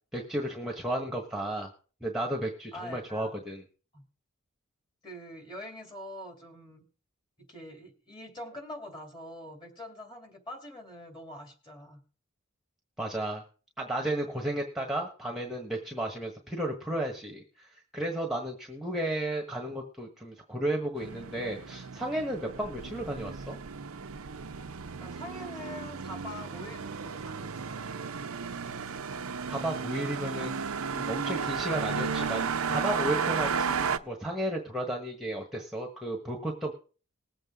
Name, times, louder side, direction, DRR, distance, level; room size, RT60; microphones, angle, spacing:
voice 1, 0.1-1.7 2.0-3.6 13.0-13.4 13.8-23.6 29.5-36.7, right 1 dB, ahead, 0 dB, 1.4 m, -33 dB
voice 2, 2.7-3.5 3.9-4.0 5.0-6.8 7.5-12.0 25.0-27.8, left 1 dB, 20° left, 3 dB, 2.8 m, -44 dB
sound 1, 21.0-34.0, right 6 dB, 80° right, 0.7 m, -34 dB
20.0 x 7.8 x 3.7 m, 0.38 s
head